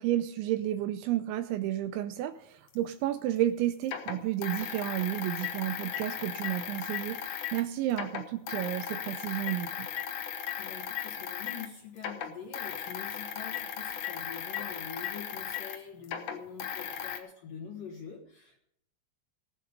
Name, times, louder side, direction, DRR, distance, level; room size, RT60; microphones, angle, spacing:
voice 1, 0.0-9.9, right 13 dB, 80° right, 10 dB, 2.8 m, -31 dB
sound 1, 2.7-2.8 3.8-7.6 7.9-11.7 12.0-17.2, left 8 dB, 90° left, 1.7 m, -37 dB
voice 2, 10.6-18.6, left 7 dB, 70° left, 1 dB, 2.1 m, -45 dB
18.5 x 8.8 x 5.2 m, 0.72 s
omnidirectional pair, 5.8 m